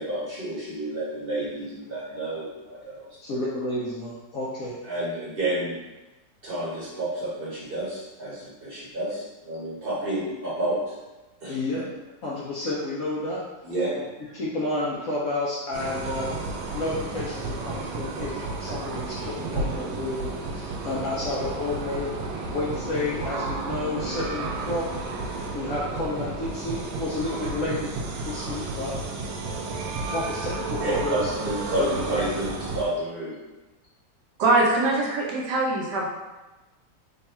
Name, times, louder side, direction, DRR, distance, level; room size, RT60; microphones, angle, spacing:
voice 1, 0.0-3.1 4.8-5.8 6.4-10.8 11.4-11.6 13.6-13.9 30.8-33.3, right 1 dB, 40° right, -7 dB, 1.0 m, -30 dB
voice 2, 3.2-4.7 11.5-11.8 12.2-13.4 14.3-22.1 22.5-24.9 25.5-27.9 28.2-28.9 30.1-31.3 31.8-32.2, left 2 dB, 65° left, -6 dB, 0.8 m, -30 dB
sound 1, 15.7-32.9, right 3 dB, 90° right, 1.3 m, -32 dB
voice 3, 34.4-36.1, right 2 dB, 70° right, -2 dB, 1.2 m, -22 dB
3.5 x 2.3 x 4.1 m, 1.1 s
omnidirectional pair, 2.0 m